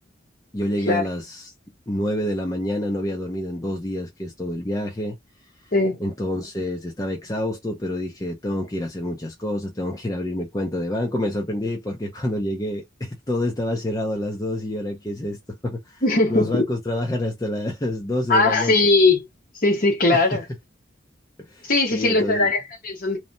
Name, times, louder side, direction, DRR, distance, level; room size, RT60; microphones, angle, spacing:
voice 1, 0.5-1.5 1.9-5.2 6.0-16.0 16.3-18.8 20.1-20.4 21.5-22.5, left 1 dB, 20° left, 0.5 m, -27 dB
voice 2, 16.0-16.6 18.3-19.2 19.6-20.4 21.7-23.2, left 2 dB, 45° left, 1.0 m, -19 dB
3.0 x 2.0 x 2.6 m
head